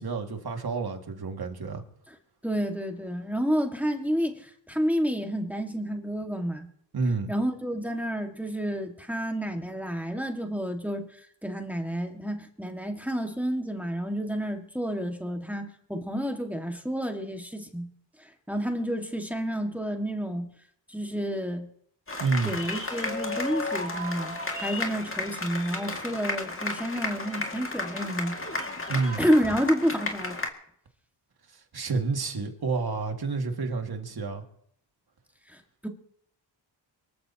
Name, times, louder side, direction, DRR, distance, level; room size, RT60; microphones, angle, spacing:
voice 1, 0.0-1.8 6.9-7.3 22.2-22.5 28.9-29.2 31.7-34.4, right 4 dB, 55° right, 4 dB, 2.1 m, -29 dB
voice 2, 2.4-6.7 7.3-17.9 18.2-20.5 20.9-21.7 22.4-28.4 29.2-30.4 35.5-35.9, equal, 5° right, 4 dB, 1.8 m, -30 dB
sound 1, 22.1-30.5, left 2 dB, 30° left, 2.1 m, -33 dB
24.0 x 14.0 x 2.9 m, 0.68 s
cardioid pair, 75°, 44 cm